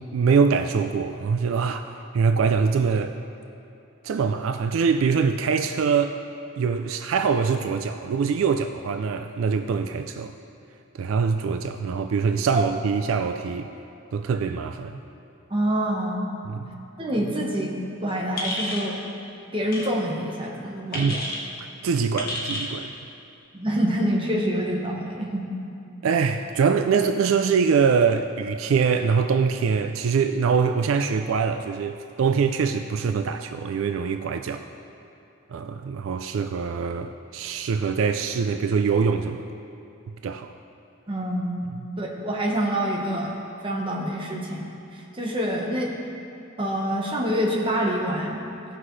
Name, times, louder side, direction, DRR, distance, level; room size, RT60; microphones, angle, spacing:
voice 1, 0.0-1.9 2.1-3.2 4.0-6.2 6.6-10.3 11.0-13.7 14.1-15.0 16.5-16.8 20.9-21.2 21.8-22.9 26.0-34.6 35.5-39.4 40.2-40.5 41.8-41.9, right 5 dB, 75° right, 7 dB, 0.3 m, -23 dB
voice 2, 15.5-16.2 17.0-17.7 18.0-18.9 19.5-21.2 23.5-25.5 41.1-43.3 43.6-44.7 45.1-46.0 46.6-48.4, equal, 25° right, -2 dB, 1.1 m, -26 dB
sound 1, 18.4-18.9 19.7-19.9 20.9-21.4 22.2-22.7, left 1 dB, 45° left, 1.4 m, -30 dB
16.5 x 5.8 x 3.2 m, 2.6 s
head